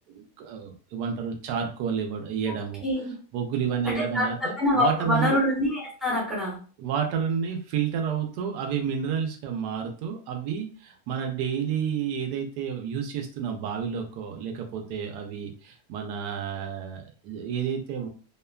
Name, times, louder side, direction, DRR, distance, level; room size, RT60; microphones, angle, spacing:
voice 1, 0.1-2.8 3.3-5.4 6.8-18.1, right 7 dB, 85° right, 3 dB, 1.2 m, -30 dB
voice 2, 2.8-3.1 3.8-6.5, left 1 dB, ahead, -5 dB, 0.7 m, -25 dB
3.0 x 2.2 x 2.2 m, 0.40 s
omnidirectional pair, 1.7 m